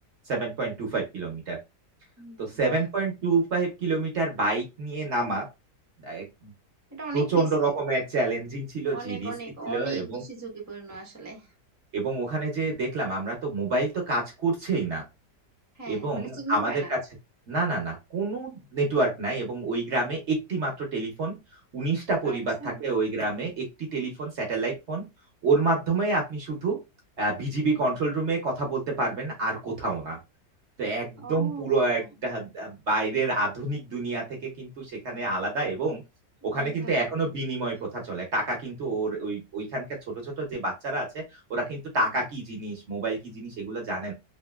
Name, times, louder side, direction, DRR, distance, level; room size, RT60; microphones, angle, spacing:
voice 1, 0.3-1.6 2.4-5.5 6.0-6.5 7.1-9.3 9.6-10.2 11.9-15.1 15.9-17.0 17.5-21.4 21.7-23.7 23.9-25.0 25.4-26.8 27.2-30.2 30.8-36.0 36.4-44.1, right 3 dB, 55° right, 1 dB, 0.8 m, -28 dB
voice 2, 2.2-2.8 6.9-7.7 8.9-11.5 15.7-16.9 22.2-22.8 31.2-32.1 36.4-37.1 38.9-39.0 42.0-42.1, right 4 dB, 25° right, 1 dB, 0.3 m, -38 dB
2.8 x 2.5 x 2.2 m, 0.24 s
omnidirectional pair, 1.8 m